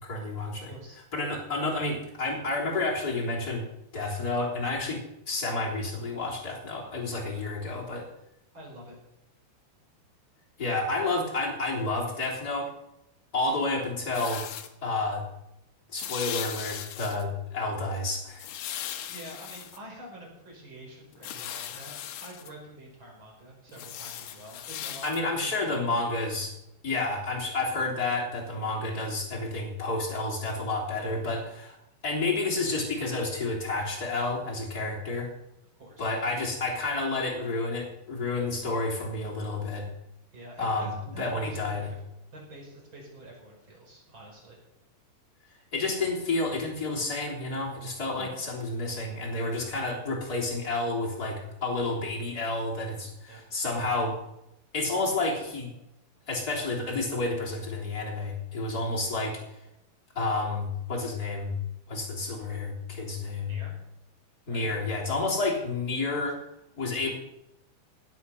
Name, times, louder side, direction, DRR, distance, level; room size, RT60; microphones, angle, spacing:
voice 1, 0.0-0.7 1.1-3.6 3.9-5.0 5.3-8.1 10.6-12.7 13.3-14.5 14.8-15.2 15.9-18.5 25.0-26.5 26.8-31.8 32.0-35.3 36.0-39.9 40.6-41.9 45.7-54.2 54.7-55.7 56.3-59.4 60.2-61.6 61.9-63.6 64.5-66.4 66.8-67.1, left 2 dB, 20° left, -3 dB, 3.5 m, -30 dB
voice 2, 0.7-1.0 7.2-7.5 8.5-9.0 19.1-26.4 35.8-36.2 40.3-42.0 42.3-44.6 48.2-48.3 53.3-53.4 63.4-63.8 64.5-64.7, right 1 dB, 25° right, -1 dB, 5.5 m, -47 dB
sound 1, 14.1-14.7 16.0-17.2 18.4-19.8 21.1-22.5 23.7-25.2, left 11 dB, 85° left, 3.4 m, -38 dB
17.0 x 10.5 x 5.7 m, 0.86 s
omnidirectional pair, 5.1 m